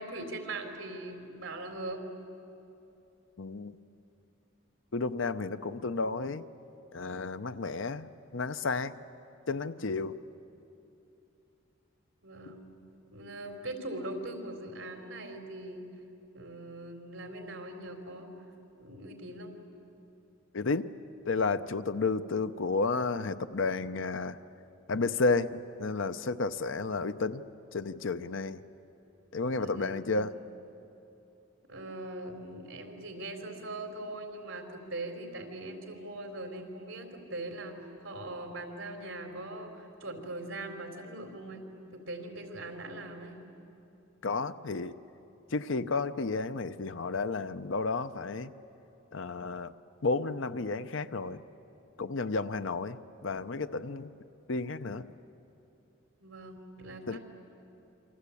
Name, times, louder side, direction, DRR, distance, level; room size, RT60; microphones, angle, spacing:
voice 1, 0.0-2.0 12.2-12.7 13.1-15.9 16.3-18.3 18.8-19.5 29.6-30.2 31.7-41.7 41.9-43.4 56.2-57.2, right 2 dB, 70° right, 4 dB, 3.7 m, -41 dB
voice 2, 3.4-3.8 4.9-6.4 6.9-8.9 9.5-10.2 20.5-20.9 21.2-24.4 24.9-27.4 27.7-28.6 29.3-30.3 44.2-45.0 45.5-48.5 49.1-49.7 50.0-51.4 52.0-54.1 54.5-55.1 57.1-57.2, left 3 dB, 70° left, 11 dB, 0.7 m, -32 dB
28.0 x 24.5 x 8.5 m, 2.9 s
head